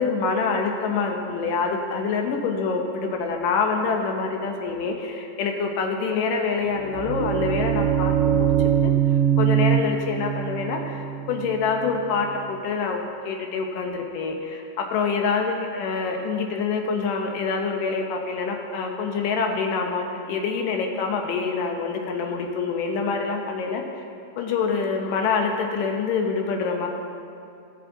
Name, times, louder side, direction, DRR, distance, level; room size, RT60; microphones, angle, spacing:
voice 1, 0.0-8.5 8.8-8.9 9.4-13.0 13.3-23.8 24.4-26.9, left 5 dB, 80° left, 2 dB, 2.7 m, -26 dB
sound 1, 6.7-12.5, right 9 dB, 85° right, 2.3 m, -23 dB
17.0 x 6.6 x 3.9 m, 2.6 s
omnidirectional pair, 3.8 m